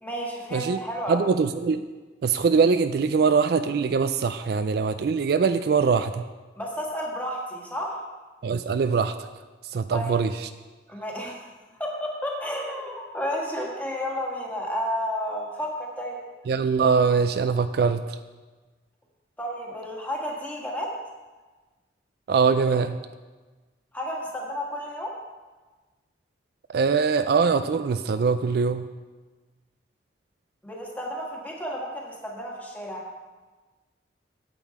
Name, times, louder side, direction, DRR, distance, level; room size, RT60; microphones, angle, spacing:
voice 1, 0.0-1.3 6.6-8.0 9.9-10.1 10.9-11.4 11.8-16.2 19.4-20.9 23.9-25.1 30.6-33.0, equal, 10° left, -2 dB, 1.5 m, -32 dB
voice 2, 1.1-1.9 2.2-6.2 8.4-9.2 9.7-10.5 16.5-18.2 22.3-23.0 26.7-28.9, right 5 dB, 55° right, 11 dB, 0.3 m, -22 dB
8.9 x 8.3 x 4.8 m, 1.3 s
head